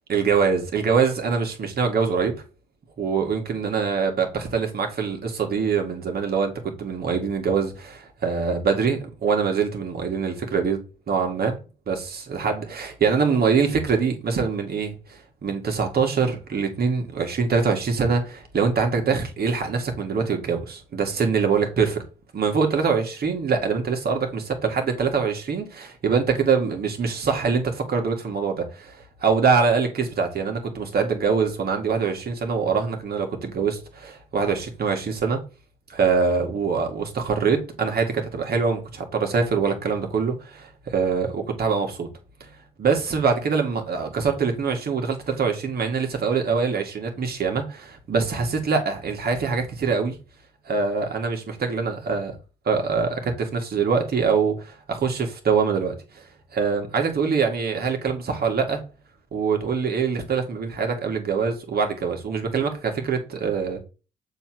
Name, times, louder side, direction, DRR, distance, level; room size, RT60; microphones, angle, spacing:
voice 1, 0.1-2.3 3.0-6.5 6.8-10.8 11.1-11.6 11.9-22.0 22.3-35.4 35.9-42.1 42.4-42.5 42.8-50.2 50.7-52.4 52.7-56.2 56.5-58.8 59.3-63.8, right 5 dB, 60° right, 2.1 m, -24 dB
6.9 x 3.2 x 6.1 m
supercardioid pair, 60°, 18 cm